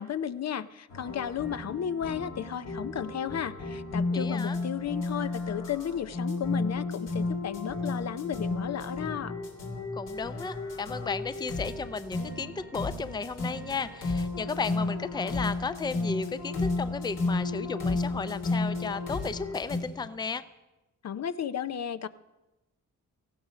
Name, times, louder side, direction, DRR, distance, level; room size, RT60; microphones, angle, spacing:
voice 1, 0.0-9.3 21.0-22.1, left 9 dB, 55° left, 13 dB, 0.7 m, -34 dB
sound 1, 0.9-19.8, left 3 dB, 75° left, 3.2 m, -33 dB
voice 2, 4.1-4.6 9.9-20.4, left 4 dB, 15° left, 14 dB, 0.5 m, -34 dB
18.0 x 15.0 x 5.0 m, 1.0 s
cardioid pair, 105°, 32 cm